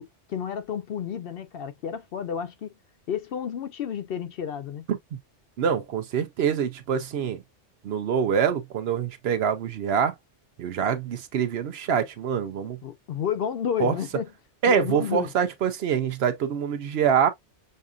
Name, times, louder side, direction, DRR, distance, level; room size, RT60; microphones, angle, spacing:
voice 1, 0.0-2.7 3.1-4.8 12.8-14.3 14.7-15.3, left 8 dB, 60° left, 0.7 m, -31 dB
voice 2, 4.9-5.2 5.6-7.4 7.8-10.1 10.6-12.8 13.8-13.9 14.6-17.3, right 7 dB, 65° right, 0.8 m, -25 dB
6.5 x 2.5 x 2.3 m
omnidirectional pair, 1.2 m